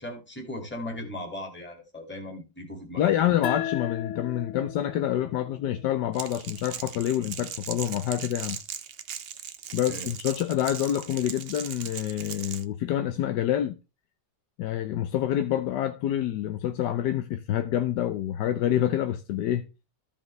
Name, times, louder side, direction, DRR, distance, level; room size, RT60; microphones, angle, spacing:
voice 1, 0.0-3.1 9.9-10.1, left 1 dB, 5° left, 1.9 m, -38 dB
voice 2, 3.0-8.6 9.7-13.8 14.6-19.7, left 11 dB, 75° left, 1.2 m, -27 dB
sound 1, 3.4-6.6, left 10 dB, 55° left, 0.9 m, -36 dB
Crackle, 6.1-12.6, right 8 dB, 80° right, 0.5 m, -38 dB
14.0 x 5.3 x 3.2 m
omnidirectional pair, 1.9 m